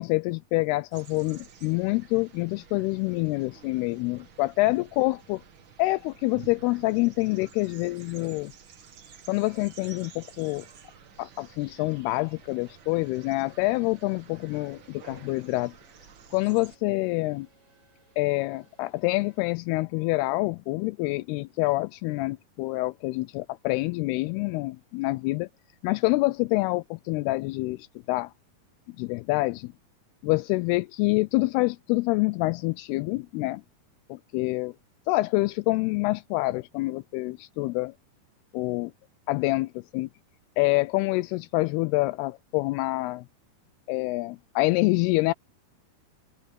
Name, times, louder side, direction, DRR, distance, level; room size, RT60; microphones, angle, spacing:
voice 1, 0.0-5.4 5.8-8.5 9.3-10.7 11.2-15.7 16.3-17.5 18.2-25.5 25.8-28.3 29.0-29.7 30.2-33.6 34.1-34.7 35.1-37.9 38.5-38.9 39.3-40.1 40.6-43.3 43.9-45.3, left 22 dB, 85° left, 2.5 m, -26 dB
sound 1, 0.9-16.8, right 7 dB, 60° right, 1.2 m, -51 dB
sound 2, 10.1-19.5, right 3 dB, 35° right, 8.3 m, -64 dB
omnidirectional pair, 4.6 m